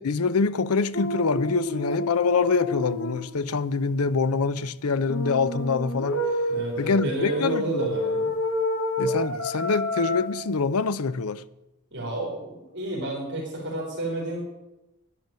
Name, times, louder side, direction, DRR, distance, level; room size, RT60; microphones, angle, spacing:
voice 1, 0.0-6.2 6.8-7.9 9.0-11.4, left 4 dB, 90° left, 0.6 m, -25 dB
sound 1, 0.9-3.3 5.1-10.3, left 1 dB, 70° left, 2.1 m, -29 dB
voice 2, 6.5-8.3 11.9-14.4, right 1 dB, 55° right, 3.9 m, -30 dB
11.0 x 10.5 x 7.6 m
head